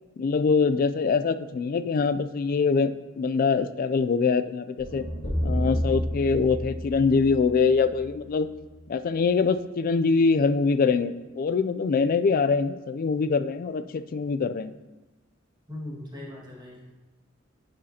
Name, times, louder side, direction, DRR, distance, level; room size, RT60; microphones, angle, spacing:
voice 1, 0.2-2.9 3.2-5.0 5.4-8.5 8.9-14.7, left 5 dB, 45° left, 11 dB, 0.3 m, -24 dB
sound 1, 4.8-8.9, equal, 70° left, 2.2 m, -31 dB
voice 2, 15.7-16.9, left 1 dB, 20° right, -5 dB, 1.8 m, -39 dB
9.9 x 5.2 x 2.8 m, 1.2 s
head